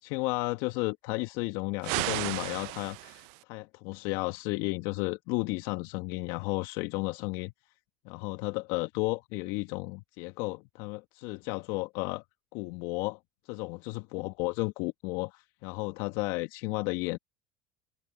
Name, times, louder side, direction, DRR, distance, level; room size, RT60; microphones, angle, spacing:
voice 1, 0.0-7.5 8.0-12.2 12.5-13.2 13.5-17.2, left 24 dB, 65° left, 1.4 m, -33 dB
sound 1, 1.8-3.4, right 29 dB, 65° right, 0.5 m, -34 dB
hypercardioid pair, 75°, 8 cm